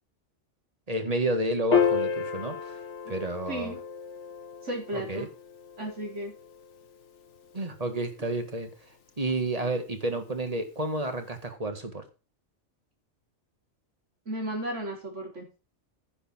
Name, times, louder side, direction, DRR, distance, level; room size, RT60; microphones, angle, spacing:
voice 1, 0.9-2.8 3.1-3.7 4.9-5.3 7.5-8.7 9.2-12.1, right 2 dB, 30° right, 7 dB, 2.0 m, -30 dB
Piano, 1.7-8.3, left 7 dB, 75° left, 1.4 m, -32 dB
voice 2, 3.5-3.8 4.6-5.3 5.8-6.3 14.3-15.5, right 1 dB, 80° right, -1 dB, 4.8 m, -34 dB
10.0 x 7.1 x 6.0 m, 0.32 s
omnidirectional pair, 1.2 m